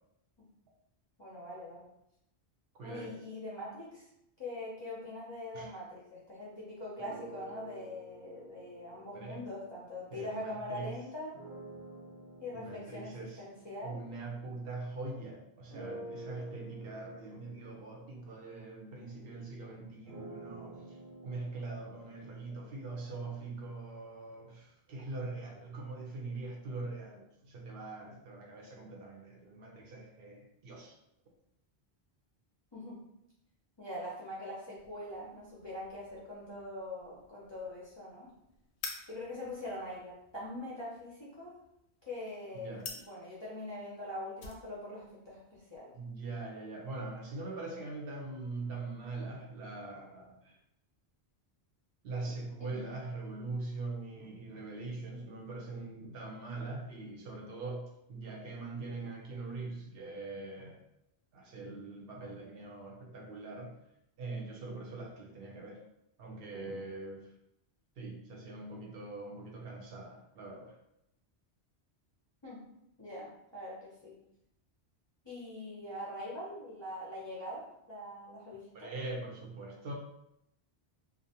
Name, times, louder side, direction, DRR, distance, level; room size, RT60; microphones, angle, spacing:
voice 1, 1.2-1.9 2.8-4.1 4.4-11.4 12.4-14.0 32.7-33.0 33.8-38.3 39.1-41.6 42.1-45.9 52.7-52.9 72.4-72.6 73.0-74.2 75.2-78.9, left 1 dB, 35° left, -7 dB, 0.5 m, -43 dB
voice 2, 2.7-3.1 5.5-5.7 9.1-9.4 10.1-11.0 12.5-13.4 13.8-21.0 21.2-31.0 42.6-42.9 45.9-50.6 52.0-60.8 61.3-63.7 64.2-65.8 66.2-67.3 68.0-70.7 78.7-79.9, right 3 dB, 65° right, -1 dB, 0.7 m, -42 dB
sound 1, 7.0-10.5 11.3-15.1 15.7-23.7, right 1 dB, 90° right, 1.1 m, -51 dB
sound 2, 34.7-47.9, left 4 dB, 85° left, 0.8 m, -52 dB
2.4 x 2.1 x 2.7 m, 0.81 s
omnidirectional pair, 1.1 m